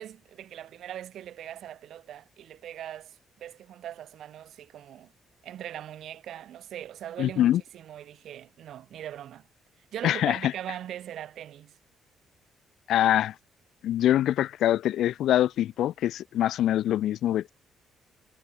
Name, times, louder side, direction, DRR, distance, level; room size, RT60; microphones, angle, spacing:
voice 1, 0.0-5.1 5.4-9.4 9.9-11.8, right 11 dB, 75° right, 1.1 m, -41 dB
voice 2, 7.2-7.6 10.0-10.5 12.9-13.3 13.8-17.5, left 12 dB, 80° left, 0.5 m, -24 dB
cardioid pair, 90°, 0 cm